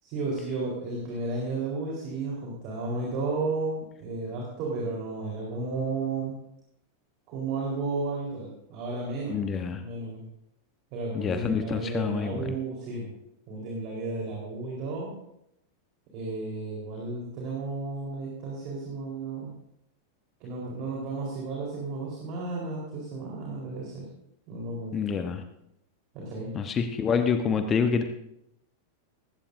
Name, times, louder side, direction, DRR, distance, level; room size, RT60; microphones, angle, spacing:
voice 1, 0.0-6.4 7.3-9.4 9.8-10.2 10.9-13.1 13.5-15.1 16.1-19.5 20.4-24.0 24.5-25.0 26.1-26.5, right 3 dB, 45° right, -3 dB, 4.2 m, -33 dB
voice 2, 9.3-9.8 11.1-12.5 24.9-25.4 26.5-28.0, left 6 dB, 25° left, 7 dB, 1.1 m, -27 dB
19.0 x 16.0 x 2.7 m, 0.79 s
figure-of-eight pair, 90°, 0 cm